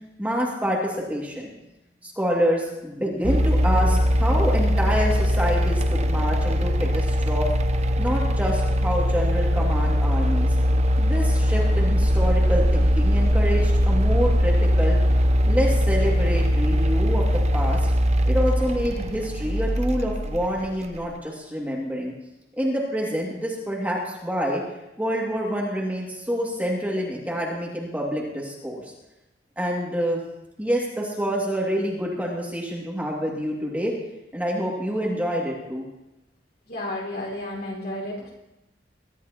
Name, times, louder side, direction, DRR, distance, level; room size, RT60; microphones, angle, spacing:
voice 1, 0.2-1.5 2.0-7.5 8.0-10.6 11.0-15.0 15.4-17.9 18.3-22.1 22.6-24.6 25.0-28.8 29.6-30.2 30.6-33.9 34.3-35.8, equal, 10° right, -3 dB, 2.3 m, -27 dB
sound 1, 3.2-21.0, equal, 40° right, 0.7 m, -21 dB
voice 2, 36.7-38.3, left 1 dB, 60° left, -2 dB, 4.9 m, -32 dB
22.5 x 12.5 x 3.0 m, 0.95 s
head